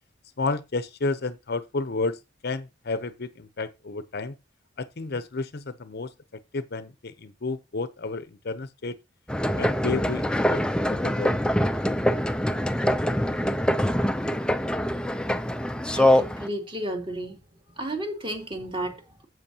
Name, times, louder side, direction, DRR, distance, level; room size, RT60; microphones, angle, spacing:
voice 1, 0.4-4.4 4.8-6.1 6.5-9.0 9.6-10.6 10.9-11.4, left 3 dB, 55° left, 0.7 m, -31 dB
sound 1, 9.3-16.5, left 1 dB, 5° left, 0.5 m, -24 dB
voice 2, 15.9-17.4 17.8-19.2, right 1 dB, 30° right, 2.5 m, -33 dB
12.0 x 7.9 x 2.9 m
head